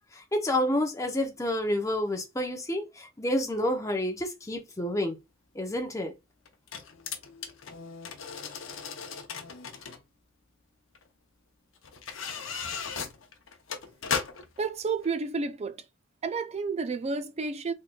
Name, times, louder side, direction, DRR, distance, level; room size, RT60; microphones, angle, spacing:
voice 1, 0.1-5.2 5.5-6.1, left 1 dB, 15° left, 0.8 m, -29 dB
sound 1, 5.0-5.1 6.5-10.0 11.0-11.1 11.8-14.6 15.0-15.1, left 6 dB, 70° left, 0.7 m, -36 dB
voice 2, 14.6-15.8 16.2-17.7, right 4 dB, 30° right, 0.4 m, -31 dB
3.7 x 3.2 x 2.3 m
head